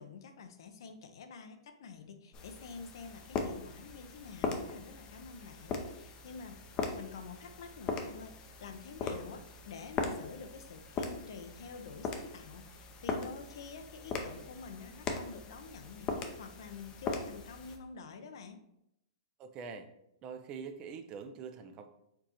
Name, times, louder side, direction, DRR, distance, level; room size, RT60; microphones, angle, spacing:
voice 1, 0.0-16.1 16.4-18.6, left 5 dB, 65° left, 7 dB, 0.6 m, -48 dB
sound 1, 2.3-17.8, left 4 dB, 30° left, 0.6 m, -40 dB
voice 2, 19.4-19.9 20.2-21.9, right 6 dB, 30° right, 7 dB, 0.5 m, -44 dB
4.5 x 3.8 x 2.9 m, 0.80 s
hypercardioid pair, 135°, 3 cm